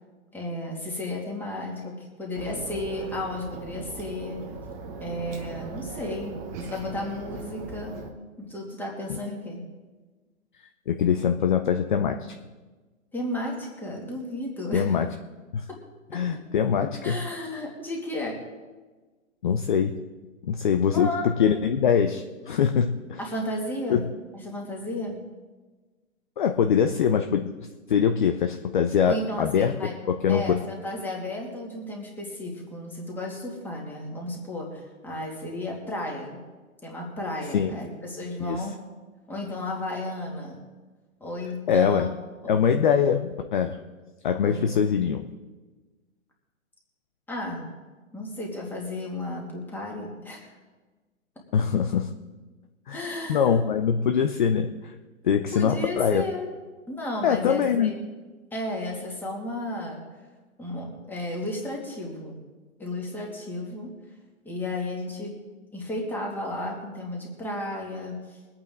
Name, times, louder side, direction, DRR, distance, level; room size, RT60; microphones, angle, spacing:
voice 1, 0.3-4.5 5.0-8.0 8.4-9.6 13.1-15.0 15.7-15.8 16.1-16.2 17.0-18.4 20.9-21.3 23.2-24.0 24.3-25.2 29.0-30.0 30.3-36.4 36.8-38.8 39.3-40.6 41.2-42.1 42.4-42.6 44.4-44.7 47.3-47.6 48.1-50.6 52.9-53.6 55.5-56.5 56.9-57.9 58.5-60.1 60.6-62.4 62.8-63.9 64.4-65.4 65.7-68.4, left 1 dB, 5° left, -2 dB, 2.4 m, -33 dB
sound 1, 2.3-8.1, right 3 dB, 15° right, 1.1 m, -39 dB
voice 2, 10.9-12.4 14.7-15.1 15.5-15.6 16.1-17.2 19.4-20.0 20.5-21.1 21.4-23.2 23.9-24.0 26.4-27.5 27.9-29.7 30.1-30.6 37.5-37.7 38.4-38.7 41.7-42.1 42.5-43.8 44.2-45.2 51.5-52.1 52.9-53.0 53.3-54.9 55.2-56.2 57.2-57.9, left 7 dB, 35° left, 7 dB, 0.6 m, -23 dB
23.5 x 8.8 x 3.9 m, 1.3 s
hypercardioid pair, 155°, 41 cm